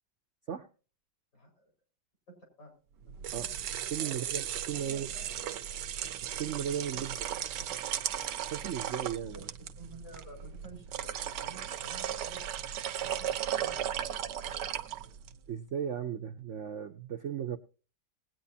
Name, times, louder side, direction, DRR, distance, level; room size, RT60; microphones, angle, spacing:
voice 1, 1.3-1.7 2.3-2.7 4.0-4.2 4.7-5.7 6.9-7.0 7.3-7.8 9.2-9.5 9.7-12.4 12.8-14.2, right 2 dB, 70° left, 1 dB, 5.4 m, -52 dB
sound 1, 3.0-15.4, right 10 dB, 80° right, 1.4 m, -36 dB
voice 2, 3.3-5.1 6.2-7.2 8.5-9.5 15.5-17.6, right 9 dB, 60° right, 5 dB, 0.8 m, -36 dB
20.0 x 9.2 x 2.7 m, 0.36 s
omnidirectional pair, 1.9 m